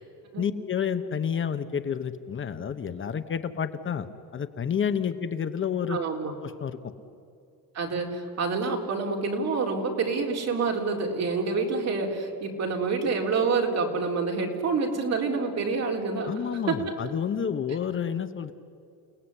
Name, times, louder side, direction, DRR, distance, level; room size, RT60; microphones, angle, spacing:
voice 1, 0.4-4.1 4.3-6.0 6.4-6.9 16.2-18.5, left 7 dB, 35° left, 10 dB, 1.0 m, -29 dB
voice 2, 5.9-6.3 7.7-16.9, right 4 dB, 45° right, 1 dB, 4.2 m, -27 dB
30.0 x 18.5 x 9.8 m, 2.7 s
cardioid pair, 155°, 35 cm